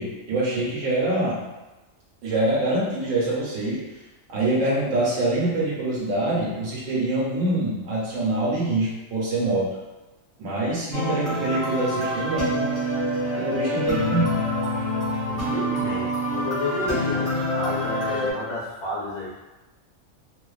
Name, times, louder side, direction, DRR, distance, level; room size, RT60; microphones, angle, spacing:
voice 1, 0.0-1.4 2.2-3.8 4.3-9.7 10.4-12.7 13.4-14.4, right 2 dB, 90° right, -5 dB, 1.1 m, -25 dB
sound 1, 10.9-18.3, equal, 15° right, 1.1 m, -26 dB
voice 2, 13.5-13.9 15.3-19.3, left 2 dB, 40° left, -7 dB, 0.4 m, -31 dB
2.5 x 2.3 x 2.3 m, 1.1 s
omnidirectional pair, 1.3 m